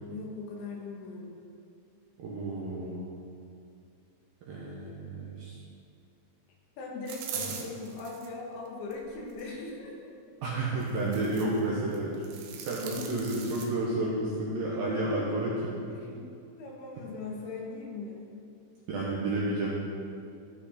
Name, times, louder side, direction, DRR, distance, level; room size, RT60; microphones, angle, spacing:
voice 1, 0.1-1.4 6.8-9.9 16.1-18.2, left 3 dB, 75° left, -1 dB, 3.5 m, -40 dB
voice 2, 2.2-3.2 4.5-5.5 7.4-7.5 10.4-12.2 12.6-15.8 18.9-19.7, right 2 dB, 70° right, -5 dB, 2.4 m, -31 dB
sound 1, 7.1-8.3 8.9-9.5 10.8-11.6 11.9-13.7, right 7 dB, 90° right, 3.5 m, -41 dB
15.5 x 6.0 x 4.3 m, 2.5 s
omnidirectional pair, 5.5 m